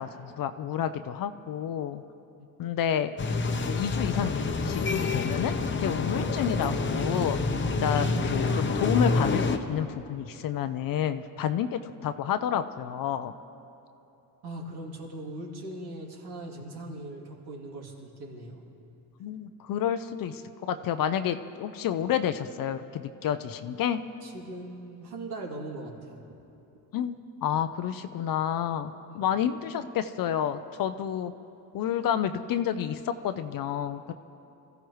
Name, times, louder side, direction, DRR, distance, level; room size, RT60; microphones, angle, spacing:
voice 1, 0.0-2.0 2.6-3.1 3.6-7.4 7.8-13.3 19.2-24.0 26.9-31.3 31.7-34.1, left 9 dB, 55° left, 10 dB, 0.6 m, -30 dB
sound 1, 3.2-9.6, left 3 dB, 25° left, 0.9 m, -27 dB
voice 2, 14.4-18.7 24.2-26.2 29.1-29.3, right 1 dB, 65° right, -1 dB, 2.9 m, -40 dB
25.5 x 14.5 x 3.2 m, 2.8 s
cardioid pair, 105°, 42 cm